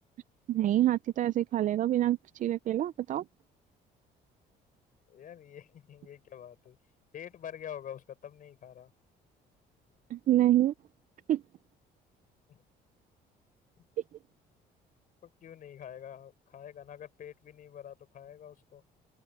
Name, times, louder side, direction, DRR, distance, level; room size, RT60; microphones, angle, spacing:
voice 1, 0.5-3.2 10.1-10.7 11.3-11.4, right 13 dB, 50° right, 0.5 m, -26 dB
voice 2, 5.1-6.8 7.1-8.9 12.5-12.6 15.2-18.8, left 9 dB, 55° left, 6.8 m, -46 dB
open air
cardioid pair, 110°, 17 cm